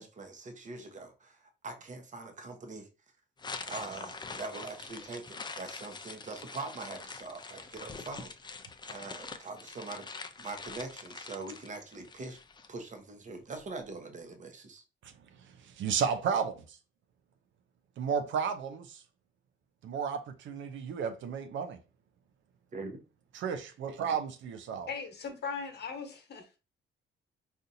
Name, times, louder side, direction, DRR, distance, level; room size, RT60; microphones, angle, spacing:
voice 1, 0.0-2.9 3.6-8.6 8.9-10.1 10.4-12.4 12.7-14.8 22.7-23.0, right 3 dB, 40° right, 0.9 m, -43 dB
sound 1, 3.4-12.7, left 4 dB, 20° left, 0.4 m, -44 dB
voice 2, 15.6-16.8 18.0-19.0 19.8-21.8 23.3-24.9, right 6 dB, 70° right, 0.6 m, -33 dB
voice 3, 24.9-26.6, left 5 dB, 55° left, 1.0 m, -39 dB
4.1 x 2.5 x 2.6 m
cardioid pair, 90°, 20 cm